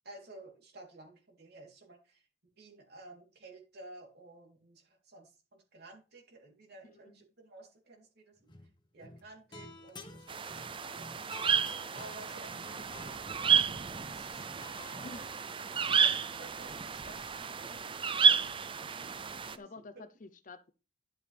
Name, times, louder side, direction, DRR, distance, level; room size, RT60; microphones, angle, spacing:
voice 1, 0.0-2.3 2.5-8.5 8.9-11.3 11.9-14.7 15.1-15.4 15.8-18.5 19.5-20.0, right 2 dB, 55° right, 3.5 m, -54 dB
sound 1, 8.4-8.7 9.0-15.2, left 2 dB, 25° left, 1.4 m, -52 dB
sound 2, 10.3-19.6, right 7 dB, 25° right, 0.5 m, -31 dB
voice 2, 19.6-20.7, left 3 dB, 45° left, 0.8 m, -49 dB
11.5 x 7.5 x 3.5 m
head